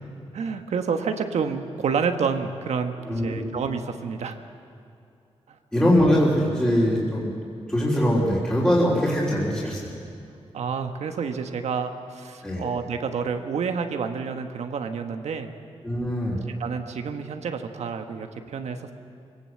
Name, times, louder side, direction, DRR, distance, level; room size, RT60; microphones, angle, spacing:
voice 1, 0.3-4.4 5.5-5.6 10.5-15.5 16.6-18.9, right 6 dB, 90° right, 6 dB, 1.4 m, -29 dB
voice 2, 3.1-3.5 5.7-7.3 7.7-9.8 12.4-12.6 15.8-16.4, equal, 10° left, -7 dB, 3.5 m, -22 dB
23.5 x 18.0 x 7.8 m, 2.5 s
wide cardioid pair, 115°, 11 cm